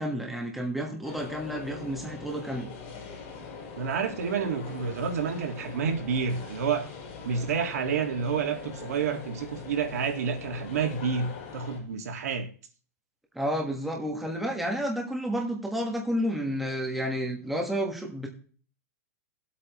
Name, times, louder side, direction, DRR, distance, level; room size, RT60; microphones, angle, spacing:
voice 1, 0.0-2.7 13.3-18.3, equal, ahead, 1.5 m, -30 dB
sound 1, 1.0-11.8, left 5 dB, 35° left, 5.3 m, -42 dB
voice 2, 3.8-6.9 7.2-12.5, right 6 dB, 90° right, 1.9 m, -29 dB
18.5 x 8.2 x 3.1 m
supercardioid pair, 175°, 8 cm